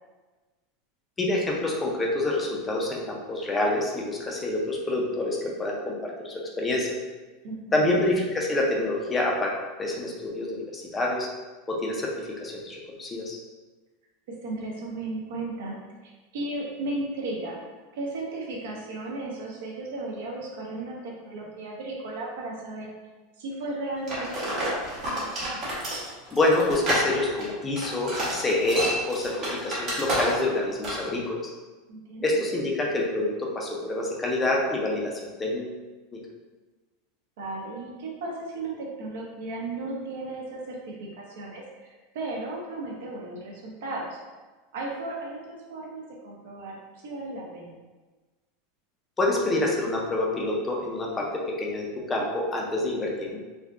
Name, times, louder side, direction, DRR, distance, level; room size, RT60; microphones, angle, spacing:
voice 1, 1.2-6.9 7.7-9.5 9.8-11.3 11.7-12.1 12.4-13.4 26.3-31.5 32.2-35.7 49.2-51.3 51.6-53.4, left 2 dB, 10° left, -2 dB, 0.4 m, -27 dB
voice 2, 7.4-8.0 14.3-15.8 16.0-17.6 17.9-22.9 23.4-24.8 31.9-32.4 37.4-44.2 44.7-46.8 47.0-47.7, right 2 dB, 65° right, -2 dB, 0.8 m, -35 dB
sound 1, 24.1-30.6 30.8-31.1, right 1 dB, 25° right, 0.8 m, -29 dB
3.4 x 2.6 x 2.3 m, 1.3 s
supercardioid pair, 180°, 0 cm